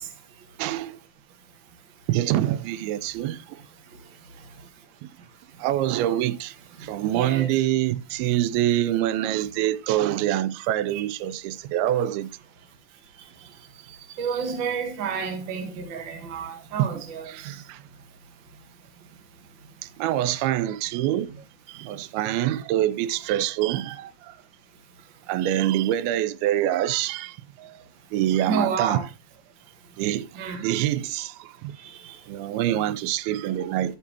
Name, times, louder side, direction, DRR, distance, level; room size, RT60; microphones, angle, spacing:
voice 1, 0.6-1.0 2.1-3.6 5.0-5.1 5.6-12.3 16.8-17.8 19.8-21.3 21.7-24.4 25.3-27.8 28.1-29.1 30.0-31.8 32.3-34.0, right 13 dB, 85° right, 2.4 m, -26 dB
voice 2, 7.1-7.5 10.9-11.0 14.2-17.5 28.4-29.0 30.4-30.6 31.8-32.2, right 6 dB, 65° right, 1.1 m, -30 dB
12.0 x 6.0 x 2.9 m
omnidirectional pair, 4.3 m